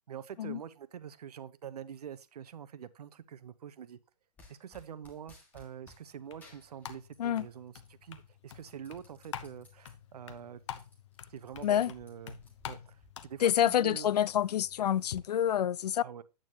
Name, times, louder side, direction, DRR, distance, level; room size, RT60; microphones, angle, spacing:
voice 1, 0.1-4.0 4.5-10.6 11.3-12.4 12.7-14.1 16.0-16.2, right 9 dB, 70° right, 0.9 m, -46 dB
sound 1, 4.4-6.0 6.4-7.5 7.8-9.9 10.3-10.4 10.7-13.1, left 2 dB, 10° left, 2.0 m, -59 dB
sound 2, 5.5-15.2, left 9 dB, 45° left, 1.0 m, -48 dB
voice 2, 13.4-16.0, left 10 dB, 75° left, 0.5 m, -27 dB
9.0 x 8.7 x 2.9 m
hypercardioid pair, 165°, 21 cm